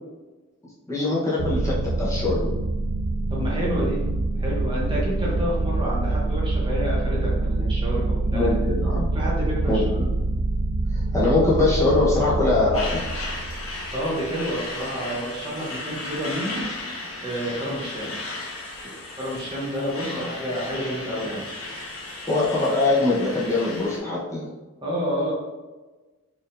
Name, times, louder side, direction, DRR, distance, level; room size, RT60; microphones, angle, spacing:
voice 1, 0.9-2.5 8.3-9.2 9.7-10.1 10.9-13.0 20.1-20.3 22.3-24.5, left 2 dB, 15° left, -7 dB, 0.9 m, -23 dB
sound 1, 1.4-14.3, right 2 dB, 60° right, 0.3 m, -25 dB
voice 2, 3.3-4.0 4.4-8.5 9.1-10.1 13.9-16.6 17.2-18.1 18.8-18.9 19.2-21.4 24.8-25.3, equal, 20° right, -5 dB, 0.8 m, -29 dB
Truck, 12.7-24.0, left 2 dB, 75° left, 1.0 m, -35 dB
4.4 x 3.6 x 2.5 m, 1.2 s
head